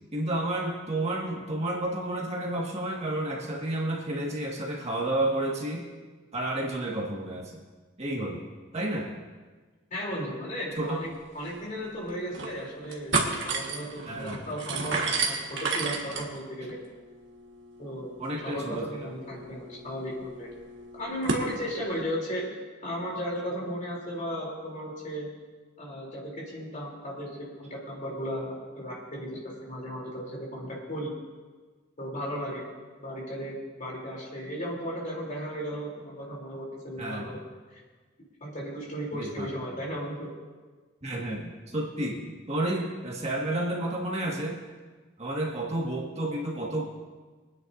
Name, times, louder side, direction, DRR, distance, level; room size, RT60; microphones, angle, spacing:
voice 1, 0.1-5.8 6.3-7.6 8.0-8.4 8.7-9.1 10.8-11.0 14.1-14.5 18.2-18.9 37.0-37.2 39.1-39.5 41.0-44.6 45.2-46.8, right 1 dB, 35° right, -3 dB, 1.8 m, -31 dB
voice 2, 9.9-11.1 11.3-13.1 13.4-16.8 17.8-18.1 18.4-20.5 20.9-22.4 22.8-25.3 25.8-31.1 32.0-32.7 33.0-37.4 38.4-40.3, equal, 40° left, -3 dB, 3.3 m, -35 dB
sound 1, 11.1-11.2 11.5-11.6 12.1-12.5 12.8-21.5, right 4 dB, 65° right, 1.6 m, -33 dB
24.5 x 9.7 x 2.7 m, 1.4 s
head